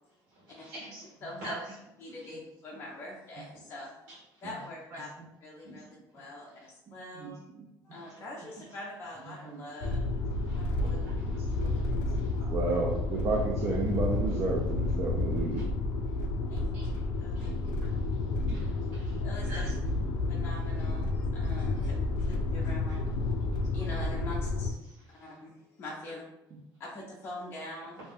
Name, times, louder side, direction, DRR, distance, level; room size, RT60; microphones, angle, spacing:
voice 1, 0.3-1.1 1.4-1.7 4.9-5.0 5.6-5.8 7.9-8.2 10.5-12.3 15.6-15.7 16.7-17.0 17.3-17.5 17.8-18.1 18.5-19.7 22.9-23.0 24.9-25.0, right 1 dB, 90° right, -9 dB, 1.0 m, -46 dB
voice 2, 1.2-1.5 2.0-4.1 4.4-5.1 5.4-5.9 6.1-7.5 7.8-10.0 10.5-11.0 12.3-12.4 16.5-16.9 17.2-17.5 19.2-19.5 20.3-21.9 22.5-23.0 23.7-24.8 25.2-26.2 26.8-28.0, left 1 dB, 30° left, -4 dB, 0.5 m, -43 dB
sound 1, 9.8-24.7, left 2 dB, 80° left, 0.4 m, -31 dB
voice 3, 11.5-12.0 12.4-15.7 19.5-19.6, right 3 dB, 35° right, -1 dB, 0.4 m, -32 dB
2.5 x 2.2 x 3.4 m, 0.90 s
cardioid pair, 140°, 8 cm